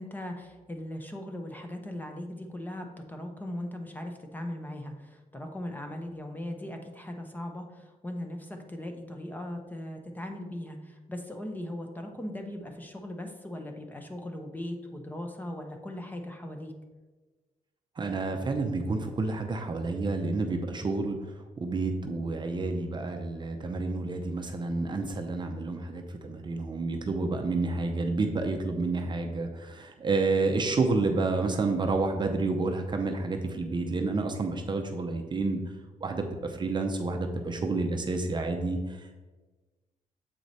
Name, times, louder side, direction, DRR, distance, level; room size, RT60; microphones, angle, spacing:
voice 1, 0.0-16.7, left 1 dB, 10° left, 4 dB, 0.7 m, -39 dB
voice 2, 18.0-35.6 36.0-39.2, right 3 dB, 30° right, 4 dB, 0.6 m, -29 dB
7.6 x 4.7 x 4.1 m, 1.3 s
wide cardioid pair, 140°, 15 cm